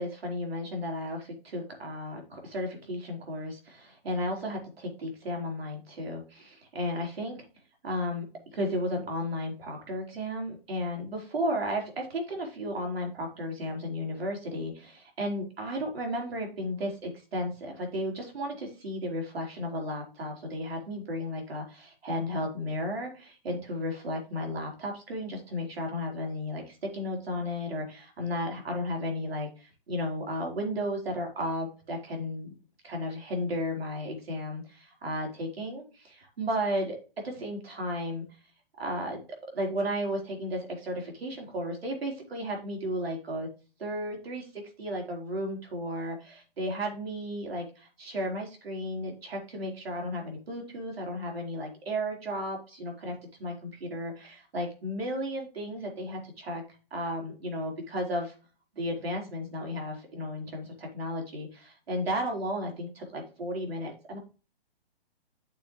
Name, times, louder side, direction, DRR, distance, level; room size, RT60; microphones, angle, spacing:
voice 1, 0.0-7.5 7.8-32.5 32.8-37.0 37.2-38.2 38.8-39.2 39.5-43.5 43.8-56.6 56.9-58.3 58.7-64.2, equal, 90° right, 1 dB, 4.4 m, -34 dB
9.0 x 7.0 x 3.2 m, 0.35 s
hypercardioid pair, 165°, 29 cm